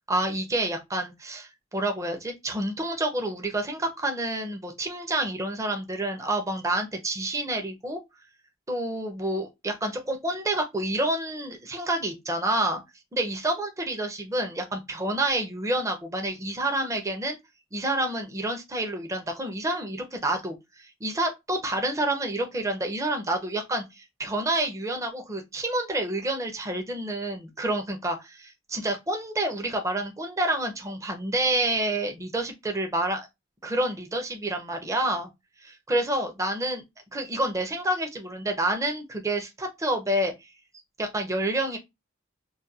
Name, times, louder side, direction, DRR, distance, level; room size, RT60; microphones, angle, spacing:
voice 1, 0.1-8.0 8.7-12.8 13.1-17.4 17.7-33.2 33.6-35.3 35.6-36.8 37.1-40.3 41.0-41.8, right 1 dB, 15° right, 0.5 m, -28 dB
2.3 x 2.2 x 2.6 m
head